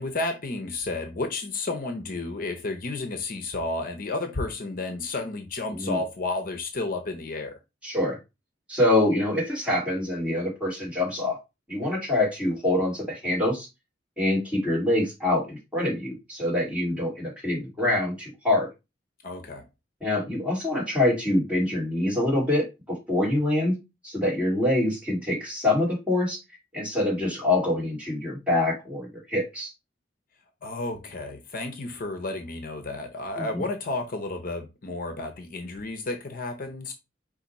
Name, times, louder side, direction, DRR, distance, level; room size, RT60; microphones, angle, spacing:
voice 1, 0.0-7.6 19.2-19.6 30.6-36.9, left 2 dB, 50° left, 0.6 m, -32 dB
voice 2, 7.8-8.2 8.7-11.4 11.7-13.7 14.2-18.7 20.0-23.8 24.0-26.4 26.7-29.7 33.4-33.6, left 1 dB, 5° right, 2.0 m, -25 dB
4.9 x 2.5 x 4.1 m
head